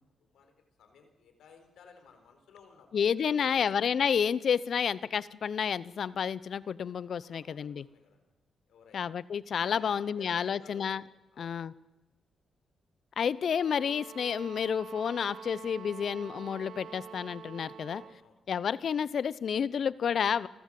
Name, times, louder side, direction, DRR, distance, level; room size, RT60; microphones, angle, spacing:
voice 1, 0.2-0.5 0.8-2.9 3.3-3.7 7.2-8.3 8.7-9.1 9.8-11.0 11.3-11.7 17.9-18.4, left 6 dB, 80° left, 5 dB, 4.2 m, -56 dB
voice 2, 2.9-7.8 8.9-11.0 11.4-11.7 13.2-18.0 18.5-20.5, left 7 dB, 65° left, 19 dB, 0.7 m, -30 dB
sound 1, 13.5-18.2, right 7 dB, 75° right, 1.6 m, -47 dB
27.5 x 14.5 x 7.7 m, 1.0 s
cardioid pair, 65°, 0 cm